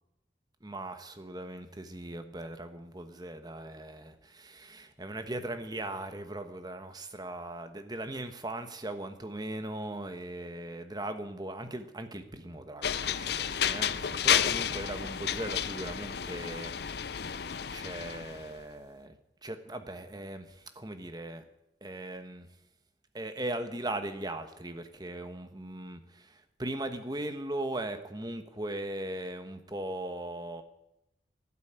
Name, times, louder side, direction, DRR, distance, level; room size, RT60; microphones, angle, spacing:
voice 1, 0.6-19.1 19.4-21.4 21.8-22.5 23.1-30.6, right 1 dB, 20° right, 8 dB, 1.2 m, -39 dB
sound 1, 12.8-18.5, left 9 dB, 55° left, 0.6 m, -31 dB
12.5 x 11.5 x 8.8 m, 0.87 s
head